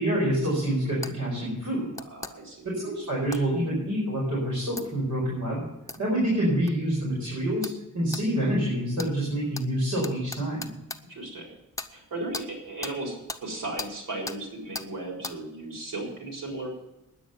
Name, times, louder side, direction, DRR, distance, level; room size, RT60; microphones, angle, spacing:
voice 1, 0.0-1.9 2.6-5.6 6.0-10.7, right 1 dB, 65° right, -4 dB, 5.2 m, -27 dB
sound 1, 1.0-1.1 1.9-2.3 3.3-3.4 4.8-4.9 5.9-6.0 6.7-6.8 7.6-7.8 8.1-8.2 9.0-9.1 9.5-9.7 10.0-11.0 11.8-11.9 12.3-12.5 12.8-13.0 13.3-13.4 13.8-13.9 14.3-14.4 14.7-14.9 15.2-15.4, left 2 dB, 10° left, 0.9 m, -36 dB
voice 2, 2.1-2.7 11.1-11.5 11.9-13.1 13.4-16.7, right 2 dB, 90° right, -1 dB, 4.2 m, -35 dB
10.5 x 8.6 x 9.3 m, 0.94 s
wide cardioid pair, 105°, 32 cm